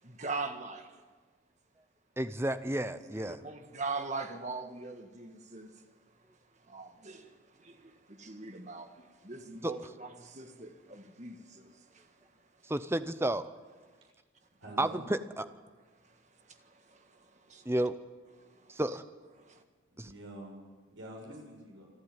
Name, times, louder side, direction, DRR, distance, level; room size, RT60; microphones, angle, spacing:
voice 1, 0.0-1.0 2.9-3.0 3.4-5.7 6.7-12.0 16.5-17.1 17.5-17.7 18.4-18.8 19.4-19.6, right 3 dB, 35° right, 1.6 m, -42 dB
voice 2, 2.2-3.4 9.6-9.7 12.7-13.4 14.8-15.5 17.7-17.9 18.7-19.0 20.0-20.1, right 1 dB, 10° right, 0.7 m, -31 dB
voice 3, 14.6-15.0 19.9-20.6 20.9-21.9, right 1 dB, 75° right, 7.2 m, -46 dB
27.5 x 11.5 x 9.1 m
head